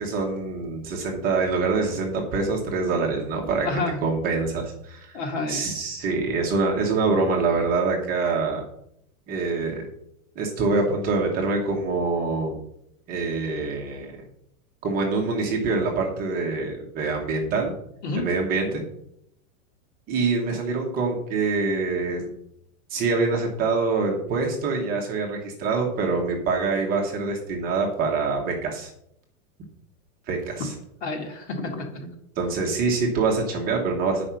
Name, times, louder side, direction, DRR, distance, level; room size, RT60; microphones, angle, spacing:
voice 1, 0.0-3.7 4.0-5.2 5.5-8.6 9.3-9.9 10.4-12.6 13.1-14.1 14.8-17.7 18.2-18.8 20.1-22.3 22.9-28.9 30.3-30.7 32.4-34.3, right 4 dB, 20° right, 0 dB, 1.0 m, -25 dB
voice 2, 3.6-4.0 5.1-5.6 18.0-18.3 31.0-32.1, left 3 dB, 50° left, 2 dB, 1.9 m, -29 dB
8.8 x 5.0 x 5.6 m, 0.75 s
supercardioid pair, 170°, 44 cm